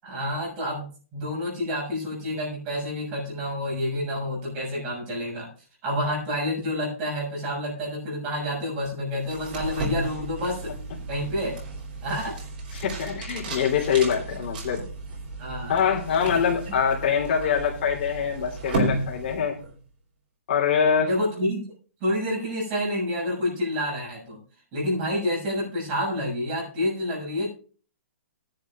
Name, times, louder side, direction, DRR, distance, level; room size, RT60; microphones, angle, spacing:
voice 1, 0.0-0.9 1.1-5.5 5.8-10.7 11.1-11.6 12.0-12.4 15.4-15.8 16.7-16.8 21.0-21.7 22.0-24.4 24.7-27.5, left 1 dB, 20° right, -4 dB, 6.7 m, -28 dB
sound 1, 9.2-19.8, right 2 dB, 40° right, 3.4 m, -33 dB
voice 2, 12.7-14.8 15.7-19.6 20.5-21.1, left 7 dB, 45° left, -2 dB, 3.3 m, -24 dB
19.0 x 10.5 x 2.5 m, 0.40 s
hypercardioid pair, 175°, 8 cm